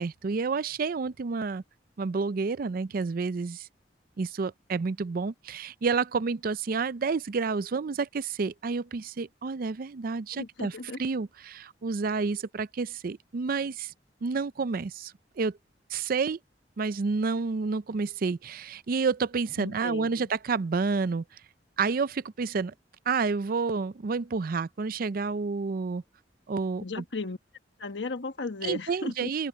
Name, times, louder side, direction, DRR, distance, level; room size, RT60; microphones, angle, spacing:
voice 1, 0.0-1.6 2.0-3.7 4.2-10.7 11.0-13.9 14.2-15.5 15.9-16.4 16.8-21.2 21.8-22.7 23.1-26.0 26.5-27.0 28.6-29.5, right 4 dB, 55° right, 0.5 m, -29 dB
voice 2, 10.3-11.0 19.6-20.3 26.8-27.4 27.8-29.3, left 3 dB, 85° left, 1.3 m, -35 dB
open air
head